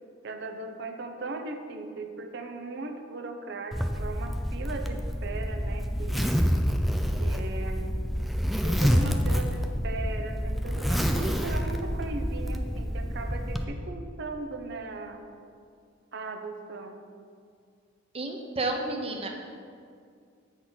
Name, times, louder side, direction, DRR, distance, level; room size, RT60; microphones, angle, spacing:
voice 1, 0.2-6.4 7.2-8.0 8.6-15.2 16.1-17.0, right 2 dB, 60° right, 6 dB, 0.7 m, -38 dB
Zipper (clothing), 3.7-13.6, equal, ahead, 0.4 m, -28 dB
voice 2, 18.1-19.3, right 2 dB, 30° right, 3 dB, 0.8 m, -31 dB
8.4 x 4.0 x 6.2 m, 2.3 s
head